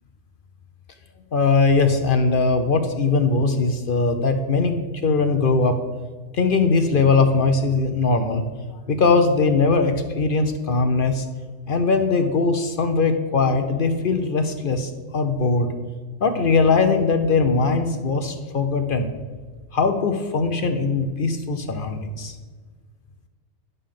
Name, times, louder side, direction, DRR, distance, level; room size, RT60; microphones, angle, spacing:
voice 1, 1.3-5.8 6.3-8.4 8.7-11.3 11.7-15.7 16.2-19.1 19.7-22.3, left 4 dB, 55° left, 7 dB, 0.7 m, -20 dB
10.5 x 6.7 x 3.7 m, 1.5 s
omnidirectional pair, 1.3 m